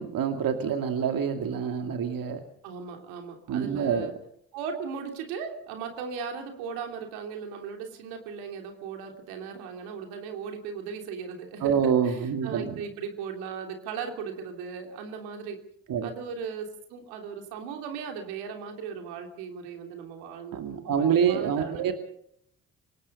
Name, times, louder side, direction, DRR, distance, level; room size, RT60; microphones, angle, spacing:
voice 1, 0.0-2.4 3.5-4.1 11.6-12.7 15.9-16.1 20.5-21.9, right 7 dB, 65° right, 6 dB, 2.5 m, -26 dB
voice 2, 2.6-4.1 4.5-15.6 16.0-21.9, right 6 dB, 85° right, 4 dB, 3.2 m, -37 dB
26.0 x 19.0 x 5.5 m, 0.70 s
hypercardioid pair, 55°, 37 cm